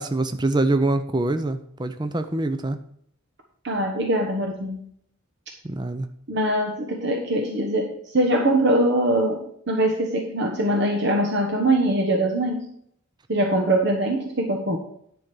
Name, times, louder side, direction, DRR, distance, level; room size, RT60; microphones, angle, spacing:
voice 1, 0.0-2.8 5.6-6.1, right 2 dB, 20° right, 9 dB, 0.5 m, -24 dB
voice 2, 3.6-4.8 6.3-12.7 13.3-14.8, right 1 dB, 55° right, 2 dB, 1.1 m, -22 dB
10.5 x 5.3 x 6.1 m, 0.66 s
head